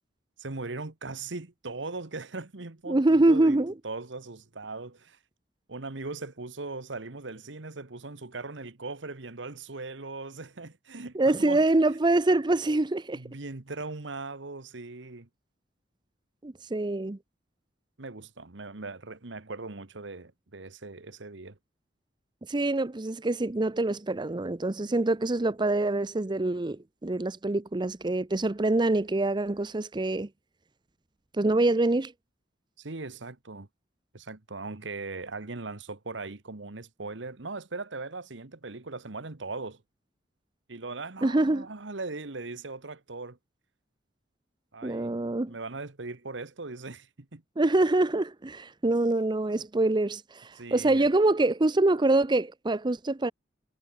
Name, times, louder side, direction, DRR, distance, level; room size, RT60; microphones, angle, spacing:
voice 1, 0.4-5.2 5.7-11.6 13.1-15.3 18.0-21.6 32.8-33.7 34.1-39.8 40.7-43.4 44.7-45.2 45.5-47.4 50.5-51.1, right 3 dB, 75° right, 1.4 m, -39 dB
voice 2, 2.9-3.7 11.2-13.2 16.4-17.2 22.5-30.3 31.4-32.1 41.2-41.7 44.8-45.5 47.6-53.3, right 2 dB, 25° right, 0.6 m, -25 dB
head